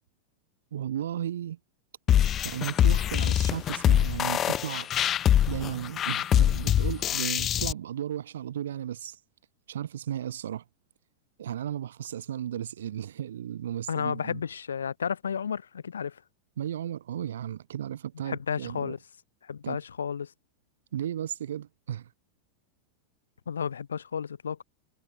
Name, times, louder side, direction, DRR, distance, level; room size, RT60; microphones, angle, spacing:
voice 1, 0.7-1.6 2.4-4.9 5.5-9.2 9.7-10.6 11.4-14.4 16.6-18.9 19.6-19.8 20.9-22.1, right 10 dB, 60° right, 4.6 m, -34 dB
sound 1, 2.1-7.7, left 10 dB, 30° left, 0.7 m, -24 dB
voice 2, 13.9-16.2 18.2-19.0 19.4-20.3 23.5-24.6, left 7 dB, 70° left, 1.1 m, -32 dB
figure-of-eight pair, 90°, 0 cm